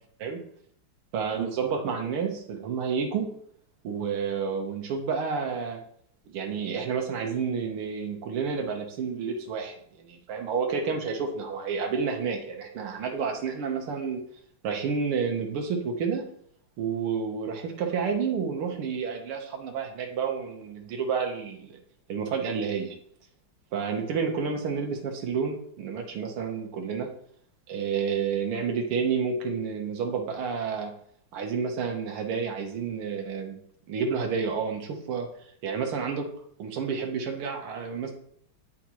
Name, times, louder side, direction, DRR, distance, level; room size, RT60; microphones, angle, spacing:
voice 1, 1.1-3.3 3.8-5.8 6.3-14.2 14.6-16.2 16.8-21.8 22.1-23.0 23.7-27.1 27.7-30.9 31.3-33.6 33.9-35.3 35.6-36.3 36.6-38.1, right 6 dB, 85° right, 3 dB, 1.9 m, -30 dB
11.0 x 3.6 x 2.9 m, 0.65 s
omnidirectional pair, 2.4 m